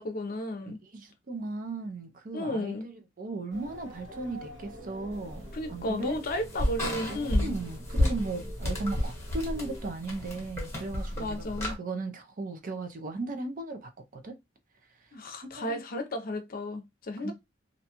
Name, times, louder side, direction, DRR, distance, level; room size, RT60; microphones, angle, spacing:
voice 1, 0.0-0.8 2.3-2.9 5.5-7.6 11.2-11.8 15.1-17.3, left 1 dB, 50° left, 0.6 m, -33 dB
voice 2, 0.7-6.2 7.1-14.3 15.4-15.8 17.2-17.3, right 3 dB, 45° right, 0.5 m, -37 dB
sound 1, 3.5-9.9, left 1 dB, 70° right, 1.1 m, -47 dB
sound 2, 5.1-11.7, left 1 dB, 15° left, 1.1 m, -32 dB
2.6 x 2.2 x 2.8 m
head